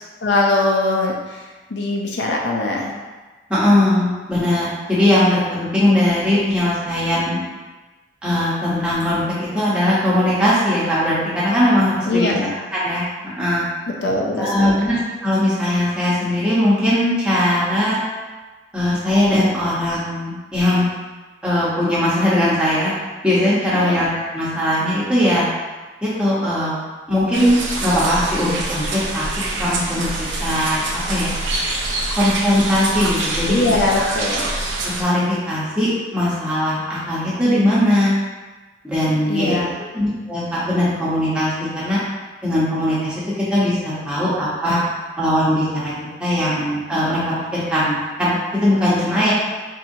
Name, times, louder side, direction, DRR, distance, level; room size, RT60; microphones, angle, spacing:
voice 1, 0.2-2.9 12.1-12.5 14.0-14.7 23.7-24.0 33.5-34.5 39.3-39.8, left 2 dB, 70° left, -1 dB, 0.6 m, -21 dB
voice 2, 3.5-7.4 8.2-12.3 12.7-13.0 13.4-13.6 14.4-18.0 18.7-20.8 21.4-22.9 23.2-25.4 26.0-26.7 27.1-29.2 29.6-30.8 31.1-31.3 32.1-33.6 33.9-34.1 34.9-38.1 38.8-39.6 39.9-42.0 42.4-43.1 43.5-44.8 45.2-45.9 46.2-49.3, left 1 dB, 5° right, -10 dB, 0.9 m, -19 dB
sound 1, 27.3-35.0, right 2 dB, 85° right, 0.6 m, -25 dB
4.3 x 2.7 x 2.7 m, 1.3 s
head